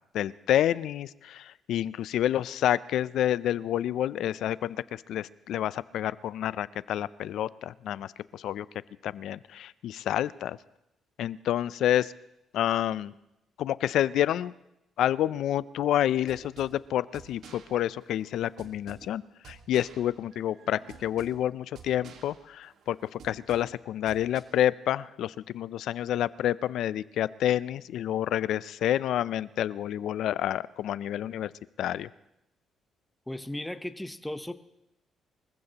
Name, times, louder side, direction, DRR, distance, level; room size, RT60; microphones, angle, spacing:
voice 1, 0.1-8.7 9.0-10.6 11.2-12.1 12.5-13.1 13.6-14.5 15.0-31.5 31.8-32.1, left 11 dB, 80° left, 18 dB, 0.4 m, -29 dB
sound 1, 16.1-24.4, right 6 dB, 75° right, 1.6 m, -52 dB
voice 2, 33.3-34.5, left 1 dB, 5° left, 10 dB, 0.8 m, -36 dB
24.0 x 15.0 x 2.9 m, 0.87 s
cardioid pair, 90°, 0 cm